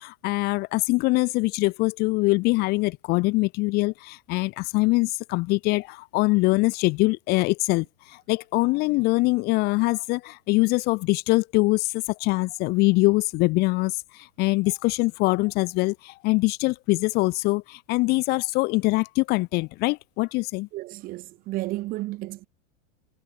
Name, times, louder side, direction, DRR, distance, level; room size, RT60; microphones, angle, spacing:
voice 1, 0.0-20.7, left 23 dB, 25° left, 1.6 m, -23 dB
voice 2, 20.7-22.5, right 18 dB, 20° right, 1.8 m, -32 dB
supercardioid pair, 175°, 39 cm